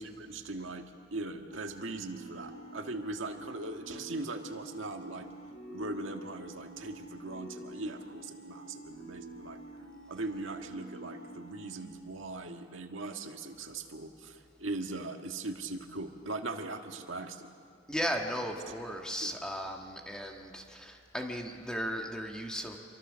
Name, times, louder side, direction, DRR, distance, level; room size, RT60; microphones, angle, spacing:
voice 1, 0.0-5.3 5.7-9.6 10.1-17.5 19.2-19.3, right 2 dB, 80° right, 4 dB, 1.7 m, -40 dB
sound 1, 1.5-11.9, right 2 dB, 90° left, 4.3 m, -48 dB
voice 2, 17.9-22.8, equal, 5° left, 2 dB, 1.5 m, -36 dB
27.0 x 24.0 x 6.4 m, 2.4 s
head